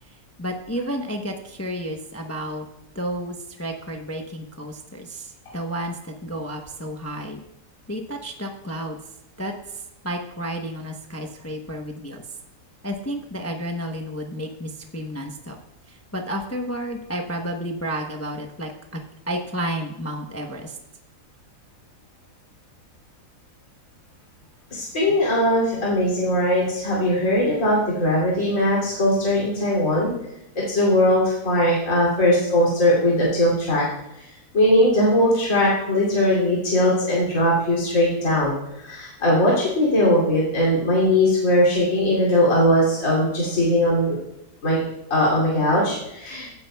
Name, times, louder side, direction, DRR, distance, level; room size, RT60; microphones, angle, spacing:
voice 1, 0.4-2.7 2.9-7.4 7.9-9.0 9.4-12.2 12.8-15.5 15.9-19.0 19.3-20.8, equal, 15° left, 3 dB, 0.6 m, -31 dB
voice 2, 24.7-30.1 30.5-33.8 34.5-38.5 38.8-44.2 44.6-44.8 45.1-46.5, left 1 dB, 50° left, -6 dB, 3.2 m, -20 dB
16.5 x 9.5 x 2.3 m, 0.87 s
omnidirectional pair, 1.7 m